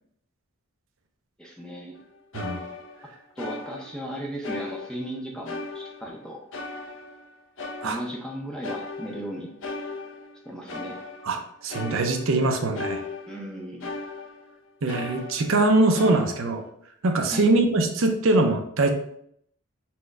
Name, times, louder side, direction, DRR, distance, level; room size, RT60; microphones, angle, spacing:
voice 1, 1.4-2.0 3.4-6.4 7.8-9.5 10.4-11.0 13.3-13.9 17.3-17.5, equal, 5° left, -1 dB, 0.6 m, -36 dB
sound 1, 1.9-2.0 2.3-4.1 4.4-5.2 5.5-8.3 8.6-14.5 14.9-15.6 15.9-16.7, left 3 dB, 55° left, 0.6 m, -38 dB
voice 2, 11.6-13.0 14.8-16.6 17.0-18.9, right 2 dB, 65° right, 4 dB, 0.5 m, -22 dB
4.4 x 2.1 x 4.5 m, 0.69 s
head